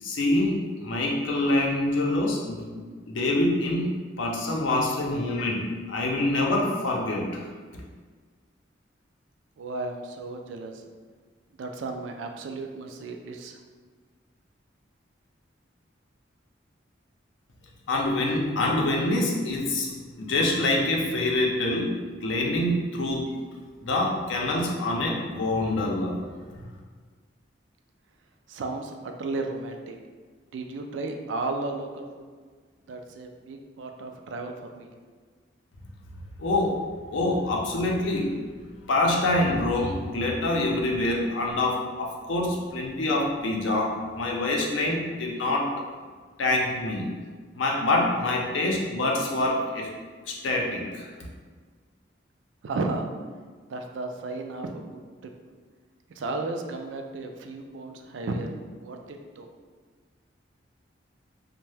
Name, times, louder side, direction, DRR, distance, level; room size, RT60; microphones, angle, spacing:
voice 1, 0.0-2.8 3.1-3.9 4.2-5.6 5.9-7.4 17.9-23.3 23.8-26.1 26.5-26.7 36.4-36.8 37.1-38.3 38.9-45.7 46.4-47.1 47.5-49.9 50.3-51.1, left 2 dB, 85° left, -1 dB, 0.5 m, -26 dB
voice 2, 9.6-10.8 11.6-13.6 28.5-30.0 30.5-32.2 32.9-34.9 52.6-53.1 53.7-55.3 56.2-59.5, right 3 dB, 75° right, 4 dB, 0.3 m, -34 dB
2.6 x 2.1 x 3.3 m, 1.5 s
head